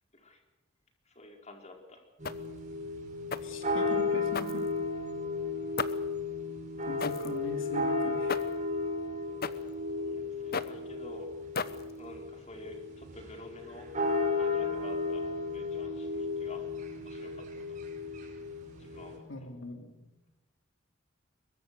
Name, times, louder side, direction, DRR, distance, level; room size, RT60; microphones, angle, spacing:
voice 1, 1.0-2.0 10.0-11.3 12.0-13.9 14.4-16.6 16.9-17.8 18.8-19.2, left 2 dB, 35° left, 3 dB, 4.7 m, -49 dB
sound 1, 2.2-2.6 3.3-3.6 4.3-5.0 5.8-6.2 7.0-7.4 8.3-8.6 9.4-9.7 10.5-10.9 11.5-12.0, left 5 dB, 50° left, 1.0 m, -36 dB
sound 2, 2.2-19.2, left 3 dB, 40° right, 5.7 m, -34 dB
voice 2, 3.4-4.7 6.9-8.5 19.3-20.1, left 1 dB, 85° left, 5 dB, 2.8 m, -41 dB
23.0 x 22.0 x 6.9 m, 1.0 s
head